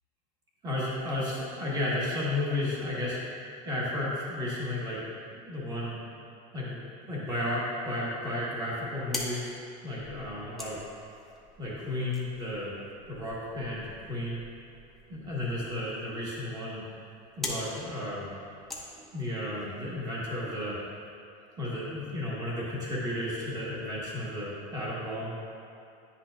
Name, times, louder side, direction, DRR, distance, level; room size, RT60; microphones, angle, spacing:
voice 1, 0.6-3.2 3.6-5.0 5.3-6.0 6.5-6.8 7.1-9.5 9.8-10.8 11.6-12.8 13.1-14.4 15.1-16.8 17.4-18.3 18.9-20.8 21.6-25.3, left 1 dB, 20° right, -6 dB, 1.4 m, -33 dB
sound 1, 8.9-19.7, left 1 dB, ahead, 0.6 m, -44 dB
9.8 x 5.7 x 2.4 m, 2.6 s
cardioid pair, 175°, 19 cm